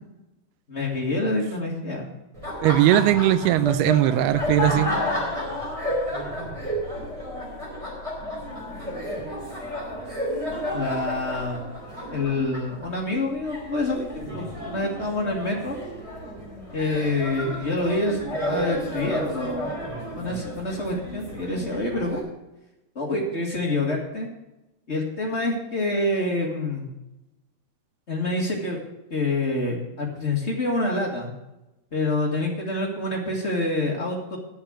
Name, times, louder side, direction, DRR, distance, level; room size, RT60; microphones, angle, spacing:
voice 1, 0.7-2.1 10.7-11.7 12.1-15.8 16.7-18.2 18.5-19.6 20.1-22.2 22.9-24.3 24.9-26.9 28.1-28.8 29.1-31.3 31.9-34.4, left 2 dB, 50° left, -1 dB, 0.7 m, -27 dB
Laughter, 2.3-22.2, left 1 dB, 10° right, 3.6 m, -32 dB
voice 2, 2.6-4.9, right 13 dB, 90° right, 13 dB, 2.7 m, -19 dB
10.5 x 7.4 x 7.7 m, 0.94 s
omnidirectional pair, 4.5 m